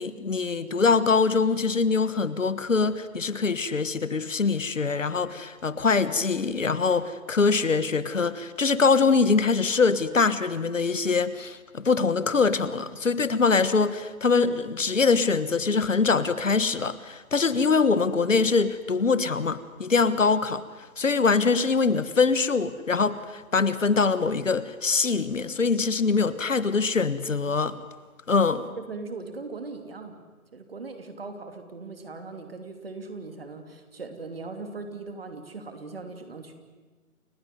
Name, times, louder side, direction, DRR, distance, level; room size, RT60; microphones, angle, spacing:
voice 1, 0.0-20.6 21.0-27.7 28.3-28.6, left 4 dB, 60° left, 15 dB, 1.5 m, -23 dB
voice 2, 28.8-30.2 30.5-36.5, right 3 dB, 40° right, 7 dB, 3.1 m, -39 dB
29.5 x 16.5 x 9.3 m, 1.3 s
figure-of-eight pair, 165°, 43 cm